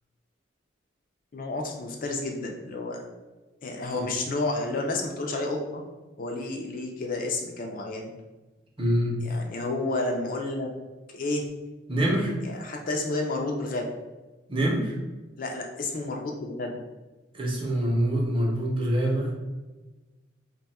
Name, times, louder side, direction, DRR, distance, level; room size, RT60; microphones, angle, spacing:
voice 1, 1.3-3.0 3.6-5.8 6.2-8.1 9.2-10.7 11.1-11.5 12.4-13.9 15.4-16.8, left 2 dB, 40° left, 1 dB, 0.4 m, -30 dB
voice 2, 8.8-9.2 11.9-12.3 14.5-15.0 17.3-19.3, equal, 25° right, -3 dB, 0.6 m, -25 dB
2.6 x 2.3 x 4.1 m, 1.2 s
head